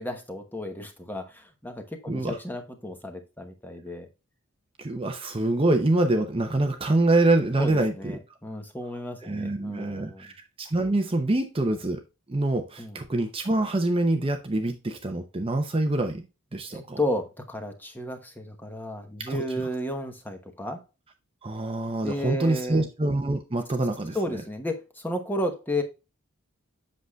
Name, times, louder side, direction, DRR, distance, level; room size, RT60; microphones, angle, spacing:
voice 1, 0.0-4.1 7.6-10.3 12.8-13.0 16.7-20.8 22.0-22.9 24.1-25.8, left 1 dB, 10° left, 1.0 m, -33 dB
voice 2, 2.1-2.4 4.8-8.2 9.2-12.0 12.3-16.3 16.5-17.0 19.3-19.7 21.4-24.4, right 2 dB, 25° right, 0.6 m, -25 dB
7.9 x 6.4 x 2.3 m
head